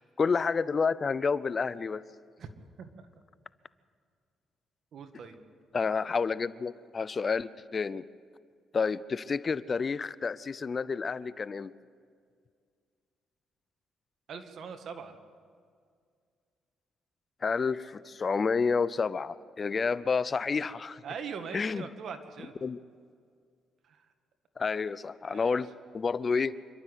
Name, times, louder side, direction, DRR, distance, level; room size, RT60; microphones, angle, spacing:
voice 1, 0.2-2.0 5.7-8.0 8.7-11.7 17.4-21.0 21.5-21.8 22.6-22.8 24.6-26.6, left 5 dB, 40° left, 17 dB, 0.5 m, -29 dB
voice 2, 4.9-5.4 14.3-15.2 21.0-22.5 23.8-24.1 25.3-25.6, right 6 dB, 65° right, 7 dB, 1.9 m, -41 dB
27.0 x 12.0 x 8.0 m, 2.1 s
cardioid pair, 90°, 0 cm